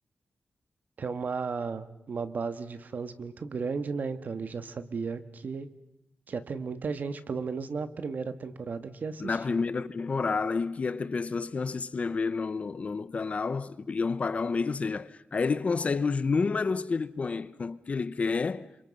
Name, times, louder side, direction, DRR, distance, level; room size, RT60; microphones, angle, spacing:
voice 1, 1.0-5.7 6.3-9.6, right 5 dB, 55° right, 1.6 m, -34 dB
voice 2, 9.2-18.7, left 4 dB, 40° left, 0.8 m, -29 dB
29.0 x 26.0 x 5.5 m
wide cardioid pair, 175°, 4 cm